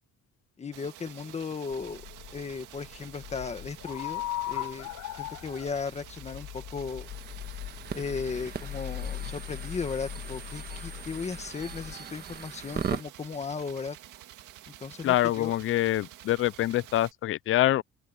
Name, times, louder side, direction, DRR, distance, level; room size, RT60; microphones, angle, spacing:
voice 1, 0.6-2.0 2.3-4.9 5.2-7.1 7.9-14.0 14.7-15.5, left 5 dB, 20° left, 1.6 m, -36 dB
sound 1, 0.7-17.1, right 13 dB, 80° right, 1.9 m, -50 dB
sound 2, 1.7-11.9, left 14 dB, 80° left, 4.1 m, -39 dB
sound 3, 7.0-13.0, right 7 dB, 30° right, 1.4 m, -39 dB
voice 2, 15.0-17.8, left 14 dB, 45° left, 0.4 m, -25 dB
open air
cardioid pair, 175°, 30 cm